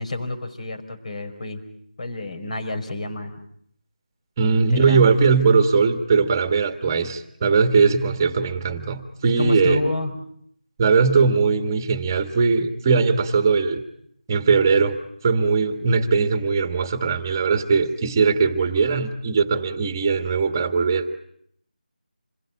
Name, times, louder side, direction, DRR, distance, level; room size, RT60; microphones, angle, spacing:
voice 1, 0.0-1.7 2.0-3.4 4.4-5.0 9.2-10.1, left 2 dB, 50° left, 6 dB, 4.7 m, -29 dB
voice 2, 4.4-9.8 10.8-13.8 14.3-15.0 15.2-21.1, right 5 dB, 20° right, 9 dB, 1.7 m, -20 dB
27.0 x 21.5 x 8.8 m, 0.69 s
figure-of-eight pair, 170°, 5 cm